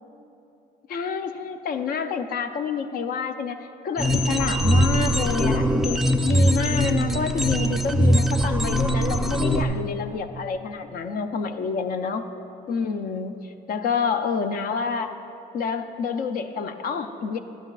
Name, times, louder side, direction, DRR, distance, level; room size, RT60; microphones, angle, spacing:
voice 1, 0.9-3.6 3.8-12.2 12.7-15.2 15.5-17.4, left 5 dB, 60° left, 9 dB, 0.6 m, -28 dB
sound 1, 4.0-9.6, equal, ahead, 0.3 m, -21 dB
12.0 x 11.0 x 2.4 m, 3.0 s
cardioid pair, 110°, 17 cm